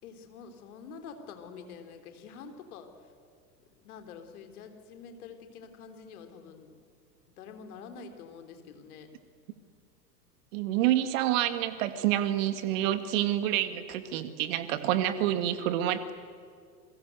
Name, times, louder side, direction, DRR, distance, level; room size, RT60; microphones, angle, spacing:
voice 1, 0.0-3.1 3.8-6.8 7.4-9.1, left 5 dB, 60° left, 6 dB, 3.6 m, -47 dB
voice 2, 10.5-16.1, right 12 dB, 50° right, 11 dB, 2.1 m, -28 dB
29.0 x 22.0 x 8.0 m, 2.1 s
figure-of-eight pair, 90°, 50 cm